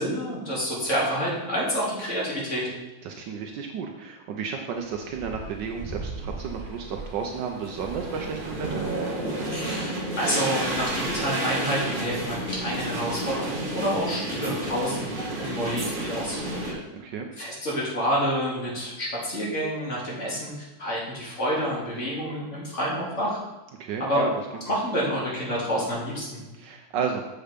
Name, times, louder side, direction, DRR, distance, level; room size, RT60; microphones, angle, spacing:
voice 1, 0.0-2.7 9.5-16.8 17.4-20.5 20.8-23.4 24.0-24.3 24.7-26.4, equal, 40° left, -5 dB, 2.7 m, -28 dB
voice 2, 3.0-8.9 16.9-17.3 23.8-24.3 26.5-27.2, right 6 dB, 75° right, 3 dB, 1.3 m, -32 dB
sound 1, 4.8-16.7, right 1 dB, 30° right, 1.4 m, -32 dB
7.0 x 5.5 x 5.1 m, 1.1 s
omnidirectional pair, 2.1 m